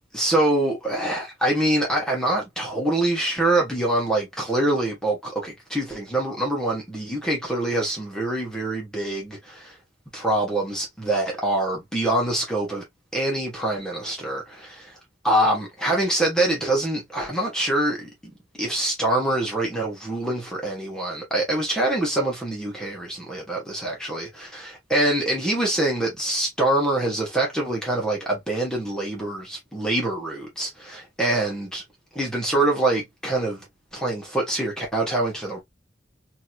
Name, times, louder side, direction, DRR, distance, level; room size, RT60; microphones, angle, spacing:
voice 1, 0.1-9.8 10.1-12.8 13.1-14.9 15.2-18.1 18.6-31.8 32.1-33.7 33.9-35.6, right 1 dB, 5° left, 1.1 m, -25 dB
2.9 x 2.8 x 2.3 m
head